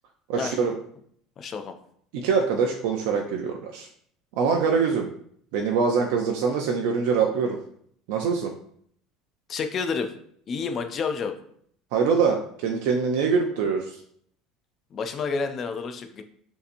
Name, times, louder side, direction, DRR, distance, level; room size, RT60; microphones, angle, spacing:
voice 1, 0.3-0.7 2.1-3.9 4.4-5.1 5.5-7.6 8.1-8.5 11.9-14.0, right 5 dB, 65° right, 2 dB, 0.5 m, -24 dB
voice 2, 1.4-1.7 9.5-10.1 10.5-11.4 14.9-16.2, left 5 dB, 25° left, 7 dB, 0.4 m, -29 dB
6.6 x 2.8 x 2.6 m, 0.64 s
cardioid pair, 175°, 0 cm